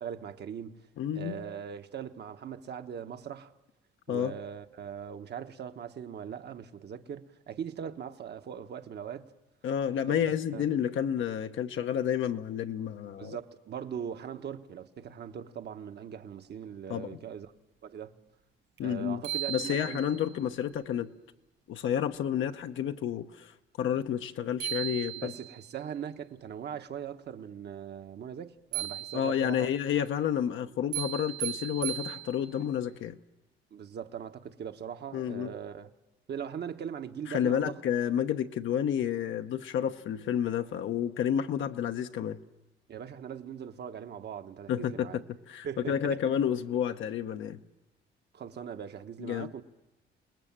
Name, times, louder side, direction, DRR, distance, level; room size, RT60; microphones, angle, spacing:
voice 1, 0.0-0.9 1.1-3.5 4.1-9.3 10.1-10.7 13.2-17.5 17.8-18.2 18.8-20.0 25.1-29.7 33.7-35.9 36.3-37.8 42.9-45.2 45.6-46.2 48.3-49.6, right 8 dB, 55° right, 1.2 m, -40 dB
voice 2, 1.0-1.4 4.1-4.3 9.6-13.3 16.9-17.2 18.8-19.2 19.5-21.1 21.7-25.3 29.1-33.2 35.1-35.5 37.3-42.4 44.7-47.6 49.2-49.5, left 9 dB, 75° left, 1.0 m, -30 dB
sound 1, 18.8-18.9 19.2-20.3 24.2-24.3 24.6-25.7 28.7-29.6 30.9-32.7, right 15 dB, 80° right, 5.2 m, -37 dB
28.0 x 19.5 x 7.4 m
cardioid pair, 90°, 20 cm